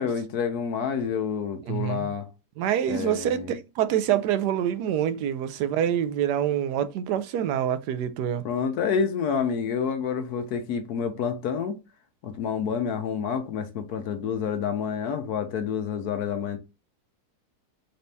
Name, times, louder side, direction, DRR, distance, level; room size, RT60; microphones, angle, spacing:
voice 1, 0.0-2.3 2.9-3.5 8.4-11.8 12.2-16.6, left 6 dB, 75° left, 1.2 m, -28 dB
voice 2, 1.7-2.1 2.6-8.5, right 10 dB, 85° right, 1.2 m, -26 dB
4.2 x 2.7 x 3.3 m
omnidirectional pair, 1.7 m